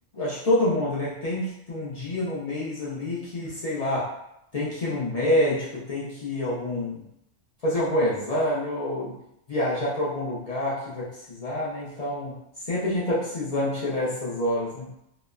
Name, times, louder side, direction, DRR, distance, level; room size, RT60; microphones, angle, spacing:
voice 1, 0.1-4.1 4.5-7.0 7.6-9.2 9.5-12.4 12.7-14.9, left 1 dB, 50° left, -7 dB, 0.4 m, -27 dB
2.9 x 2.0 x 2.3 m, 0.80 s
omnidirectional pair, 1.3 m